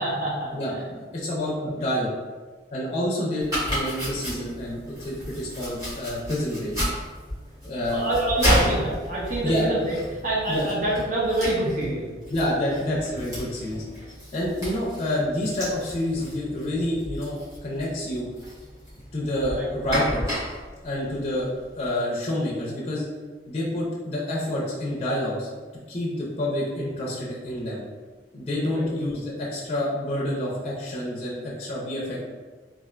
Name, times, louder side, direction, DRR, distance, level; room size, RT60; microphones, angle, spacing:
voice 1, 0.0-0.9 1.6-1.7 7.9-10.0 10.2-12.1 19.6-19.7 28.7-28.9, right 1 dB, 50° right, -5 dB, 0.8 m, -26 dB
voice 2, 0.5-2.1 2.7-3.4 3.7-6.7 7.6-8.1 9.4-9.7 10.5-10.7 12.3-13.8 14.3-18.3 19.1-20.4 20.8-21.5 21.7-23.1 23.5-25.5 25.9-27.8 28.3-32.2, left 1 dB, 35° left, -5 dB, 0.5 m, -28 dB
Domestic sounds home sounds, 3.4-21.9, equal, 20° right, 1.4 m, -32 dB
3.3 x 2.5 x 2.4 m, 1.4 s
head